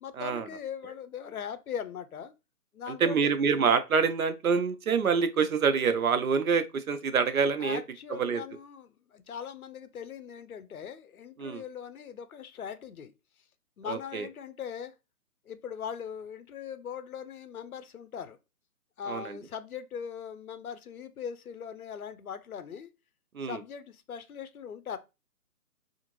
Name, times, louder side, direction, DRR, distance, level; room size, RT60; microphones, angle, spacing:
voice 1, 0.0-2.3 2.7-3.3 7.6-13.1 13.8-14.9 15.5-18.4 19.0-22.9 23.4-25.0, left 7 dB, 70° left, 0.5 m, -40 dB
voice 2, 2.9-7.8 8.2-8.4 11.4-11.6 13.9-14.3 19.1-19.4 23.3-23.6, right 6 dB, 65° right, 0.6 m, -26 dB
2.5 x 2.5 x 2.9 m
hypercardioid pair, 170°, 46 cm